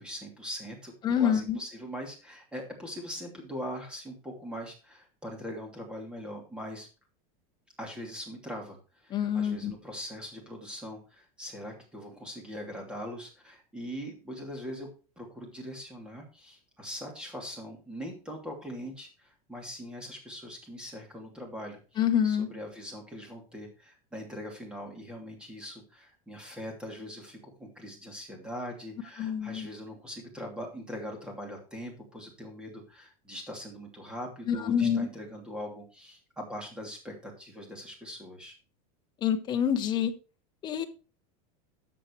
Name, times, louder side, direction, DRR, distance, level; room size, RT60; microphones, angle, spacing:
voice 1, 0.0-6.9 7.8-14.9 15.2-38.5, equal, 5° right, 1 dB, 2.8 m, -41 dB
voice 2, 1.0-1.6 9.1-9.7 22.0-22.5 29.2-29.7 34.5-35.1 39.2-40.1 40.6-40.8, left 8 dB, 25° left, 6 dB, 1.1 m, -26 dB
13.0 x 7.6 x 3.2 m, 0.34 s
supercardioid pair, 165°, 18 cm